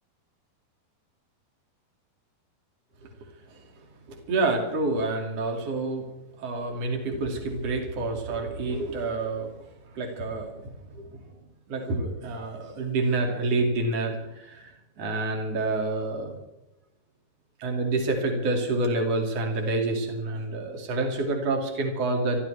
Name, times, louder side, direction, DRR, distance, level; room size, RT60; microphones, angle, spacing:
voice 1, 3.2-3.6 4.1-6.1 6.4-11.2 11.7-16.4 17.6-22.4, right 2 dB, 45° right, 2 dB, 3.4 m, -28 dB
27.0 x 14.0 x 3.5 m, 0.91 s
omnidirectional pair, 4.5 m